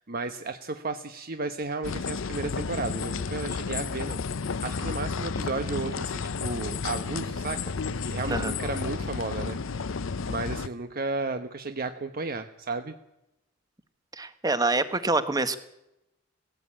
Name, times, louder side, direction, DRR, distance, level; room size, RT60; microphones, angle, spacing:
voice 1, 0.0-7.7 8.1-9.6 9.8-12.9, right 3 dB, 50° right, 8 dB, 1.0 m, -33 dB
sound 1, 1.8-10.7, left 5 dB, 75° left, 0.7 m, -32 dB
voice 2, 14.2-15.6, right 2 dB, 20° right, 11 dB, 1.3 m, -26 dB
18.5 x 16.0 x 8.7 m, 0.87 s
head